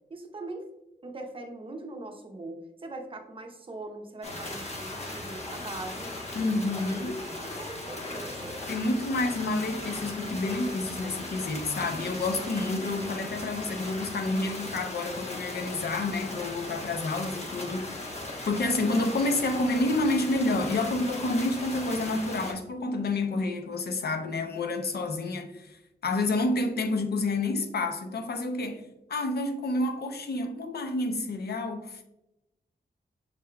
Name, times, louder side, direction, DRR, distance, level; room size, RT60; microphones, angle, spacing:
voice 1, 0.1-0.7 1.0-6.8 7.4-8.7, right 2 dB, 30° right, 0.6 m, -41 dB
sound 1, 4.2-22.5, left 2 dB, 40° left, 0.9 m, -38 dB
voice 2, 6.4-7.2 8.7-18.2 18.5-32.0, left 2 dB, 65° left, 0.6 m, -29 dB
6.5 x 3.5 x 2.2 m
wide cardioid pair, 175°, 18 cm